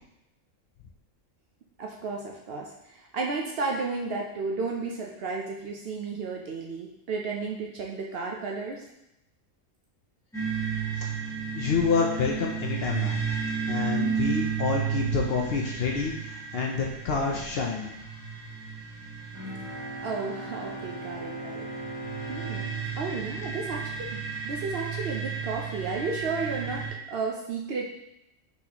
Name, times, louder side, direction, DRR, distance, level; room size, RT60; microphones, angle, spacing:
voice 1, 1.8-8.8 20.0-21.7 22.3-27.9, right 4 dB, 60° right, 0 dB, 0.7 m, -33 dB
sound 1, 10.3-26.9, right 7 dB, 5° left, 1.1 m, -33 dB
voice 2, 11.5-13.2 13.7-17.9, left 5 dB, 65° left, 0 dB, 0.6 m, -28 dB
Bowed string instrument, 19.3-24.5, right 1 dB, 20° right, 0.6 m, -40 dB
4.1 x 4.0 x 2.8 m, 0.86 s
omnidirectional pair, 1.4 m